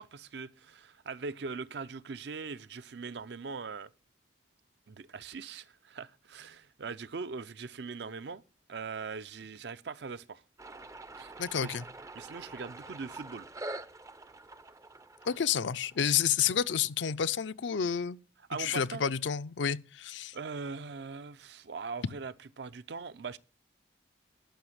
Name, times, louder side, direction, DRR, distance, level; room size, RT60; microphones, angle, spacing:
voice 1, 0.0-3.9 4.9-8.4 8.7-10.4 11.2-11.3 11.6-11.7 12.1-13.5 18.5-19.0 20.3-23.4, right 4 dB, 65° right, 0.5 m, -41 dB
sound 1, 10.6-17.1, right 2 dB, 15° right, 0.4 m, -46 dB
voice 2, 11.4-11.8 15.3-18.2 18.6-20.3, left 8 dB, 75° left, 0.5 m, -30 dB
10.5 x 5.8 x 7.8 m
head